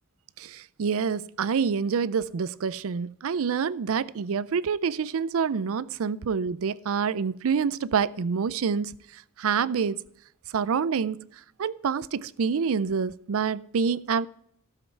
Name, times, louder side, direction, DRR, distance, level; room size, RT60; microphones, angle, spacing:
voice 1, 0.4-8.9 9.4-10.0 10.5-11.2 11.6-14.3, right 6 dB, 65° right, 0.4 m, -27 dB
12.5 x 7.5 x 4.5 m
head